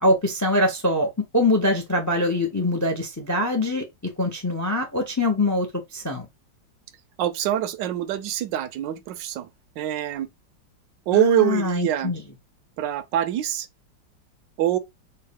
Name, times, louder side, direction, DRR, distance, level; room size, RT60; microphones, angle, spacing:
voice 1, 0.0-3.8 4.2-5.7 5.9-6.3 11.1-12.2, left 1 dB, 20° left, 0.4 m, -23 dB
voice 2, 7.2-9.5 9.8-10.3 11.1-12.1 12.8-13.7 14.6-14.8, right 12 dB, 80° right, 1.2 m, -24 dB
4.5 x 2.4 x 3.6 m
omnidirectional pair, 2.0 m